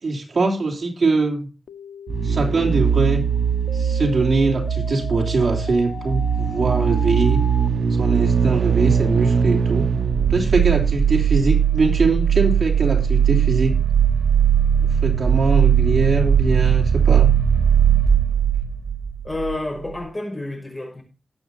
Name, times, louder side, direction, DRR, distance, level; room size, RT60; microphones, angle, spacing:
voice 1, 0.0-1.5 2.2-3.2 3.7-7.4 8.0-9.9 10.3-13.8 14.8-17.3, right 3 dB, 55° right, 3.1 m, -22 dB
sound 1, 1.7-7.7, left 6 dB, 90° left, 1.2 m, -37 dB
sound 2, 2.1-19.6 19.9-20.0, right 8 dB, 80° right, 0.8 m, -19 dB
voice 2, 19.2-21.0, left 2 dB, 20° left, 5.8 m, -29 dB
20.0 x 8.4 x 2.8 m
wide cardioid pair, 140°, 0 cm